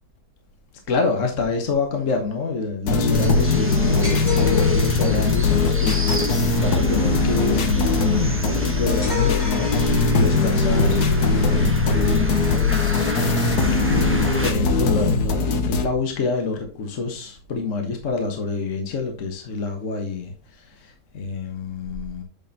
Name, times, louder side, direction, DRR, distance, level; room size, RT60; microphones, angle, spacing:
voice 1, 0.9-7.9 8.8-9.8 10.1-12.6 13.9-22.2, left 4 dB, 55° left, 1.6 m, -27 dB
sound 1, 2.9-15.9, left 3 dB, 80° left, 1.7 m, -20 dB
sound 2, 3.1-14.5, right 2 dB, 10° right, 0.9 m, -32 dB
sound 3, 4.0-5.2 9.0-10.6, left 7 dB, 30° left, 2.4 m, -30 dB
8.7 x 6.5 x 2.8 m
omnidirectional pair, 1.6 m